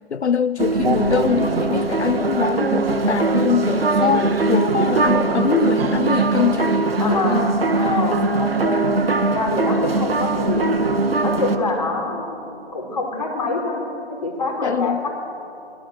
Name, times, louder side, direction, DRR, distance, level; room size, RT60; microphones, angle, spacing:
voice 1, 0.1-7.4 7.8-7.9 14.6-15.0, left 7 dB, 90° left, 0.6 m, -23 dB
sound 1, 0.6-11.6, right 3 dB, 60° right, 1.9 m, -20 dB
voice 2, 7.0-8.9 9.3-10.8 11.2-12.3 12.7-13.8 14.1-15.1, left 3 dB, 35° left, 5.2 m, -25 dB
24.5 x 18.5 x 7.8 m
figure-of-eight pair, 150°, 33 cm